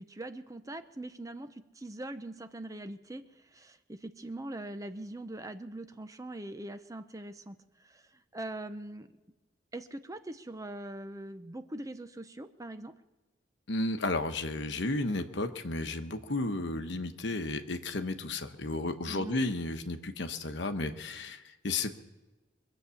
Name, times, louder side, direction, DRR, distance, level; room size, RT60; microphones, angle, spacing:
voice 1, 0.0-9.1 9.7-12.9 19.1-19.4, right 1 dB, 15° right, 9 dB, 0.6 m, -42 dB
voice 2, 13.7-21.9, left 2 dB, 65° left, 8 dB, 1.0 m, -33 dB
23.5 x 8.1 x 7.0 m, 1.1 s
head